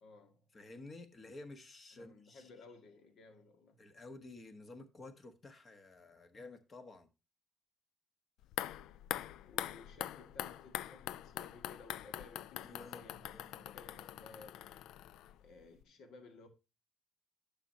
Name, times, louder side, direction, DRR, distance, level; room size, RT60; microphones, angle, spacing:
voice 1, 0.0-0.4 1.9-3.8 9.4-14.8 15.4-16.5, left 3 dB, 65° left, 2.0 m, -57 dB
voice 2, 0.5-2.5 3.8-7.1 12.6-13.0 13.3-13.6, left 2 dB, 25° left, 1.3 m, -52 dB
sound 1, 8.4-15.5 15.8-15.9, left 12 dB, 90° left, 0.4 m, -43 dB
11.0 x 6.7 x 2.8 m
cardioid pair, 165°, 0 cm